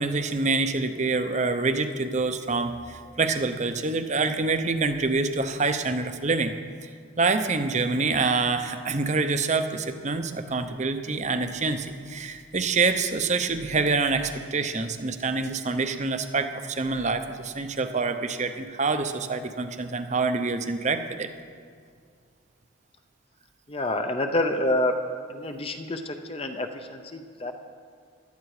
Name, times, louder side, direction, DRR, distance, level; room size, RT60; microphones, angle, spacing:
voice 1, 0.0-6.5 6.8-6.9 7.2-21.3, right 3 dB, 35° right, 8 dB, 0.7 m, -26 dB
voice 2, 23.7-24.9 25.3-27.5, left 1 dB, 25° left, 6 dB, 0.7 m, -28 dB
16.5 x 12.5 x 4.9 m, 2.1 s
head